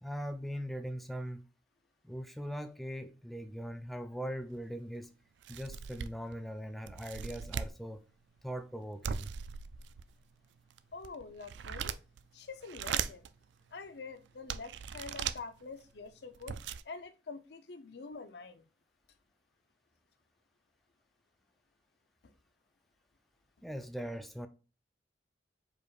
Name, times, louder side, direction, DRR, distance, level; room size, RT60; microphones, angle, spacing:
voice 1, 0.0-1.4 2.0-5.1 5.5-8.0 8.4-9.3 23.6-24.5, equal, ahead, 0.3 m, -40 dB
sound 1, 4.5-4.6 5.0-5.1 5.4-6.3 6.9-7.8 9.0-10.1 10.7-12.2 12.6-13.3 13.9-14.0 14.5-15.4 16.1-16.2 16.3-16.8, right 7 dB, 75° right, 0.4 m, -38 dB
voice 2, 10.9-12.0 12.3-13.3 13.7-16.6 16.8-18.6, left 4 dB, 60° left, 0.6 m, -46 dB
5.0 x 4.4 x 2.4 m
head